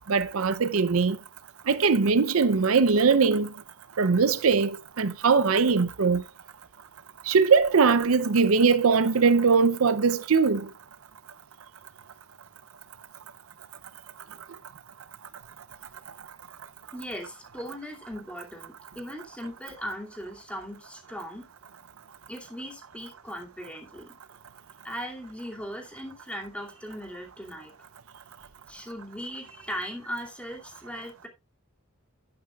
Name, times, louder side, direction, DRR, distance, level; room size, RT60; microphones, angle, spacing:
voice 1, 0.1-1.2 1.7-3.5 4.0-6.2 7.3-10.7, right 5 dB, 80° right, 0.6 m, -21 dB
voice 2, 16.9-21.5 22.3-24.1 24.8-27.7 28.7-31.3, equal, 5° left, 2.5 m, -38 dB
11.0 x 10.5 x 2.4 m
head